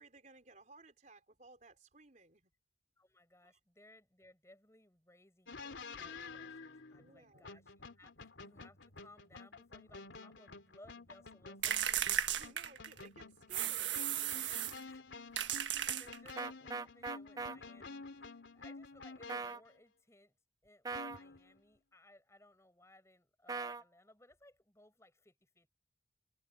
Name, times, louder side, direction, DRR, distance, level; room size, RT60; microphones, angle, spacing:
voice 1, 0.0-2.5 3.4-3.6 7.0-7.5 12.0-14.1, right 3 dB, 40° right, 4.2 m, -60 dB
voice 2, 3.0-12.1 14.8-20.4 20.6-25.7, left 1 dB, 15° left, 7.7 m, -63 dB
sound 1, 5.5-19.7 20.9-21.6, left 4 dB, 80° left, 3.3 m, -51 dB
sound 2, 11.6-13.1 13.5-14.8 15.4-16.5, right 10 dB, 75° right, 1.4 m, -35 dB
sound 3, 16.4-17.6 19.3-19.6 20.9-21.2 23.5-23.8, right 4 dB, 20° right, 0.4 m, -40 dB
head